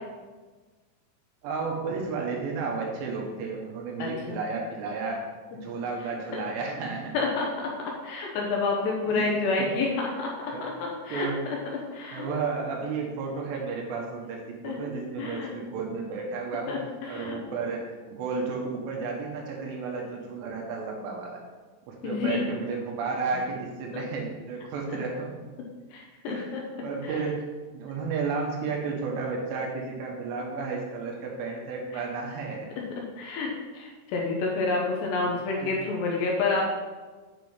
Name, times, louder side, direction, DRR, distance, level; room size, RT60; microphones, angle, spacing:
voice 1, 1.4-5.2 5.5-7.2 9.0-9.4 10.5-10.7 11.1-11.4 12.1-16.8 17.1-21.4 21.9-25.4 26.3-26.5 26.8-27.4 27.7-32.7 35.3-35.4 35.6-35.7 36.4-36.5, right 4 dB, 70° right, 0 dB, 3.1 m, -32 dB
voice 2, 4.0-4.4 6.3-6.4 7.1-7.5 8.0-11.6 11.9-12.3 14.6-15.5 16.7-17.4 22.0-22.4 23.3-23.4 23.9-24.0 24.9-25.0 25.9-26.6 27.0-27.2 31.9-32.0 33.2-36.7, left 3 dB, 75° left, -1 dB, 2.8 m, -29 dB
9.4 x 4.1 x 5.5 m, 1.3 s
omnidirectional pair, 5.6 m